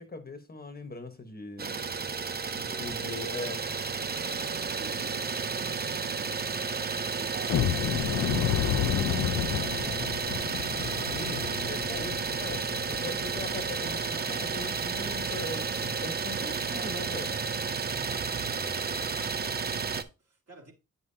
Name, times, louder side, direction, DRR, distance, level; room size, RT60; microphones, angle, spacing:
voice 1, 0.0-1.8 2.5-3.6 11.0-17.4, left 3 dB, 30° left, 1.1 m, -40 dB
Idling, 1.6-20.0, right 5 dB, 30° right, 0.6 m, -32 dB
voice 2, 2.4-2.9 4.1-10.3 18.0-20.7, right 1 dB, 55° right, 2.7 m, -51 dB
sound 1, 7.5-14.2 14.6-14.7 15.2-15.3 15.8-16.0, left 11 dB, 60° left, 0.5 m, -31 dB
9.1 x 5.5 x 2.7 m
wide cardioid pair, 120°, 31 cm